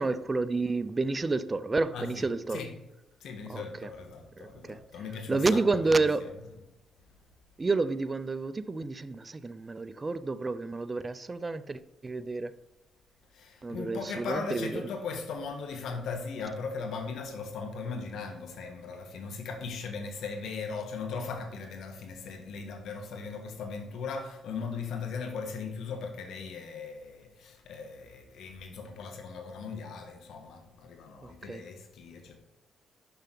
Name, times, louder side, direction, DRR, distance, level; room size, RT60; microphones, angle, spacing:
voice 1, 0.0-2.6 3.5-3.9 4.4-4.8 5.3-6.3 7.6-12.6 13.6-14.9 31.2-31.7, right 3 dB, 25° right, 0.4 m, -30 dB
voice 2, 1.9-2.7 3.2-6.3 13.3-32.4, left 5 dB, 75° left, 1.4 m, -38 dB
6.9 x 5.6 x 3.8 m
cardioid pair, 90°, 0 cm